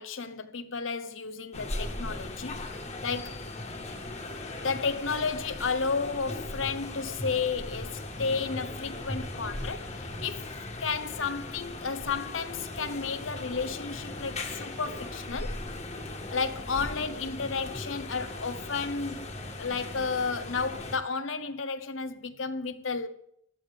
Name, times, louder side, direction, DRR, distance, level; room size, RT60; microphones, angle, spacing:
voice 1, 0.0-2.7 3.0-3.4 4.5-10.5 10.8-15.6 16.3-19.3 19.6-23.1, left 5 dB, 85° left, 0.9 m, -32 dB
sound 1, 1.5-21.0, left 2 dB, 35° left, 1.7 m, -38 dB
15.0 x 12.0 x 3.4 m
head